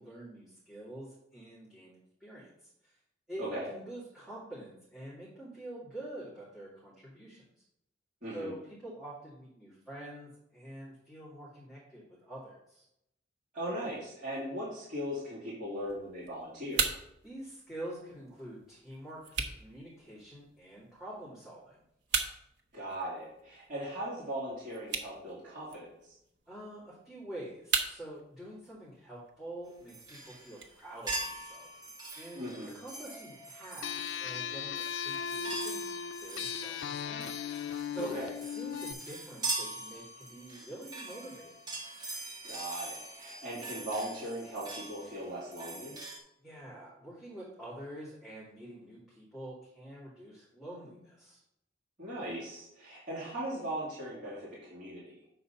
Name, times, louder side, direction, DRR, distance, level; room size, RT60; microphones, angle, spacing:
voice 1, 0.0-3.0 3.3-7.4 8.3-12.8 17.2-21.8 26.5-31.7 32.2-32.5 32.8-35.8 36.2-37.3 37.9-38.2 38.5-41.7 46.4-51.4, right 1 dB, ahead, -11 dB, 2.2 m, -46 dB
voice 2, 8.2-8.6 13.5-16.8 22.7-25.9 32.3-32.8 38.0-38.3 42.4-46.0 52.0-55.2, right 1 dB, 45° right, -10 dB, 2.7 m, -38 dB
sound 1, 15.9-31.9, right 5 dB, 65° right, 0.9 m, -40 dB
sound 2, 29.9-30.7 31.1-46.2, right 2 dB, 20° right, 1.4 m, -42 dB
sound 3, 33.8-38.9, left 7 dB, 75° left, 0.4 m, -37 dB
7.8 x 4.0 x 5.6 m, 0.80 s
head